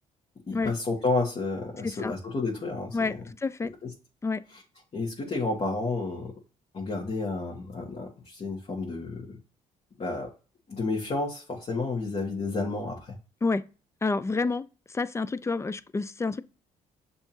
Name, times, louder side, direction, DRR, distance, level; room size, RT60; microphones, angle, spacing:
voice 1, 0.5-3.0 3.8-3.9 4.9-6.3 6.7-9.4 10.0-10.3 10.7-13.2, left 3 dB, 40° left, 1.6 m, -31 dB
voice 2, 1.8-2.1 2.9-3.7 4.2-4.4 13.4-13.6 14.0-16.4, left 3 dB, 20° left, 0.4 m, -29 dB
6.8 x 2.8 x 2.8 m
supercardioid pair, 70°, 15 cm